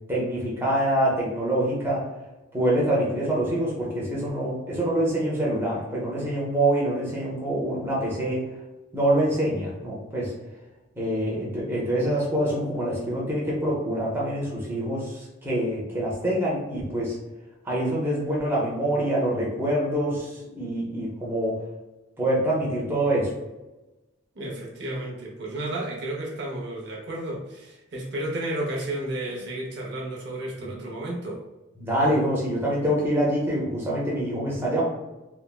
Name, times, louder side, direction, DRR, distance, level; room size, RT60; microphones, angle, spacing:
voice 1, 0.1-2.0 2.5-8.4 8.9-10.3 11.0-17.2 17.7-21.6 22.2-23.3 31.8-34.8, right 1 dB, 10° right, -6 dB, 0.6 m, -25 dB
voice 2, 24.3-31.4, right 1 dB, 55° right, -3 dB, 0.6 m, -32 dB
3.2 x 2.0 x 2.3 m, 1.0 s
head